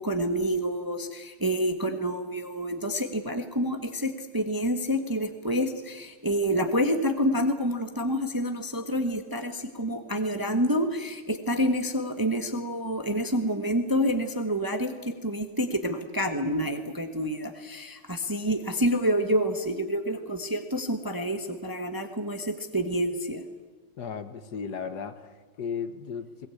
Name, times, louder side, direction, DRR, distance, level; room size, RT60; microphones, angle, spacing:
voice 1, 0.0-23.4, equal, 15° right, 6 dB, 1.1 m, -28 dB
voice 2, 24.0-26.5, left 6 dB, 60° left, 10 dB, 1.6 m, -35 dB
21.5 x 19.5 x 8.5 m, 1.3 s
omnidirectional pair, 2.0 m